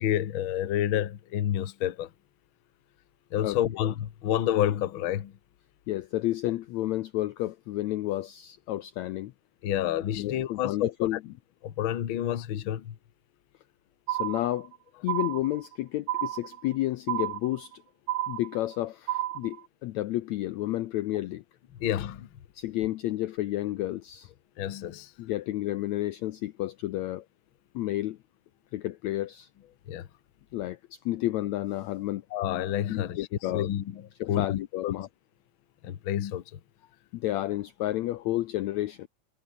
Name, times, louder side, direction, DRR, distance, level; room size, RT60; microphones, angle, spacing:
voice 1, 0.0-2.1 3.3-5.3 9.6-11.2 11.6-13.0 21.8-22.3 24.6-25.1 29.9-30.1 32.3-33.2 33.5-34.0 34.3-34.9 35.8-36.6, left 11 dB, 55° left, 1.4 m, -29 dB
voice 2, 5.9-9.3 10.2-11.2 14.1-14.7 15.0-17.8 18.3-21.4 22.5-24.3 25.2-27.2 27.7-28.2 28.7-29.5 30.5-32.2 32.9-33.7 34.2-35.1 37.1-39.1, left 15 dB, 85° left, 1.6 m, -31 dB
sound 1, 14.1-14.8 15.1-15.8 16.1-16.8 17.1-17.8 18.1-18.8 19.1-19.6, right 14 dB, 85° right, 3.0 m, -31 dB
omnidirectional pair, 4.0 m